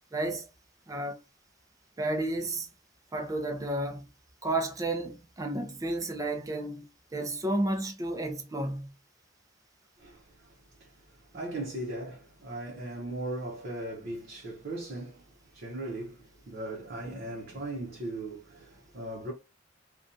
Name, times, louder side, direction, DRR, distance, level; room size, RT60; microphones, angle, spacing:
voice 1, 0.1-0.5 0.9-1.2 2.0-2.7 3.1-4.1 4.4-6.9 7.1-8.9, right 1 dB, 20° right, 0.4 m, -32 dB
voice 2, 10.0-15.3 15.5-19.3, right 1 dB, 55° right, 0.7 m, -38 dB
2.7 x 2.2 x 2.4 m
head